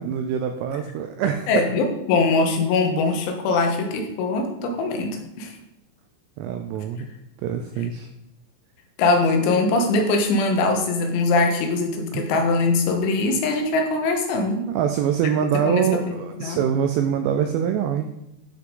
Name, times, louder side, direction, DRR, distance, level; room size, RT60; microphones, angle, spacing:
voice 1, 0.0-1.5 6.4-7.1 7.4-8.1 12.1-12.2 14.7-18.1, right 8 dB, 85° right, 6 dB, 2.4 m, -24 dB
voice 2, 1.5-5.5 9.0-14.7 15.7-16.6, left 3 dB, 85° left, 3 dB, 3.5 m, -22 dB
11.5 x 5.9 x 3.8 m, 0.86 s
omnidirectional pair, 5.5 m